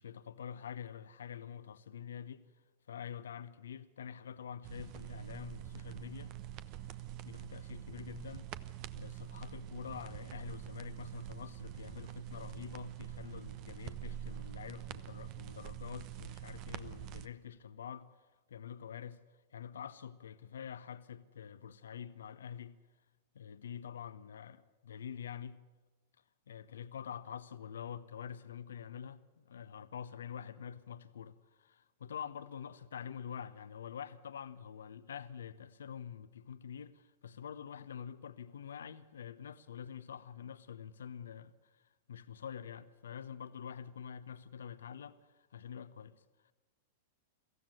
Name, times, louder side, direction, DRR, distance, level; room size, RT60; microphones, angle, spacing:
voice 1, 0.0-2.4 2.9-6.3 6.9-8.5 8.9-18.1 18.5-19.2 19.5-22.7 23.3-25.6 26.5-46.5, left 8 dB, 70° left, 0.9 m, -46 dB
sound 1, 4.6-17.3, right 12 dB, 45° right, 1.0 m, -45 dB
23.5 x 15.5 x 9.4 m
figure-of-eight pair, 100°, 0 cm